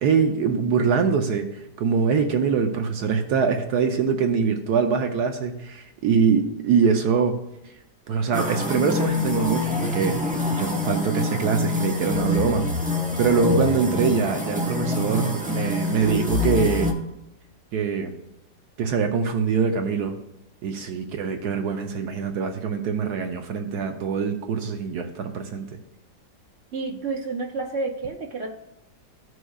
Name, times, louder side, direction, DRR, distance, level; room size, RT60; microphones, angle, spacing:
voice 1, 0.0-7.4 8.1-10.2 10.5-12.7 13.2-16.9 17.7-18.1 18.8-20.1 20.6-25.7, right 6 dB, 70° right, 5 dB, 1.2 m, -23 dB
sound 1, 8.3-16.9, left 2 dB, 5° right, 0.6 m, -26 dB
voice 2, 26.7-28.5, right 3 dB, 50° right, 2 dB, 0.8 m, -30 dB
14.5 x 6.2 x 2.3 m, 0.88 s
omnidirectional pair, 1.9 m